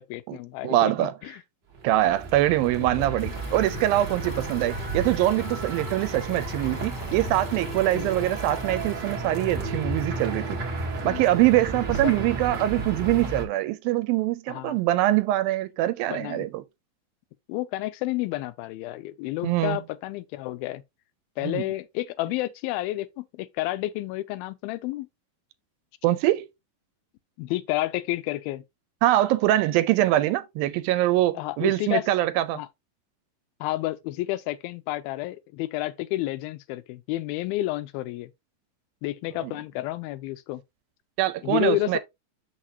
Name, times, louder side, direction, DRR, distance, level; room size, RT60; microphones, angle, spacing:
voice 1, 0.0-1.4 2.8-2.9 4.2-4.5 8.0-8.1 11.0-11.3 12.0-12.2 14.5-14.8 16.1-16.5 17.5-20.8 21.4-25.1 27.4-28.6 31.3-32.0 32.5-32.7 33.6-38.3 39.0-40.6 41.4-42.0, left 17 dB, 85° left, 2.4 m, -30 dB
voice 2, 0.6-1.1 1.8-10.6 11.0-16.6 19.4-19.8 21.4-21.6 26.0-26.5 29.0-32.6 39.4-39.5 41.2-42.0, right 15 dB, 80° right, 2.3 m, -23 dB
sound 1, 1.7-13.5, right 2 dB, 60° right, 1.1 m, -32 dB
Stream, 3.2-9.2, left 3 dB, 40° left, 1.1 m, -46 dB
6.6 x 6.2 x 2.8 m
omnidirectional pair, 4.3 m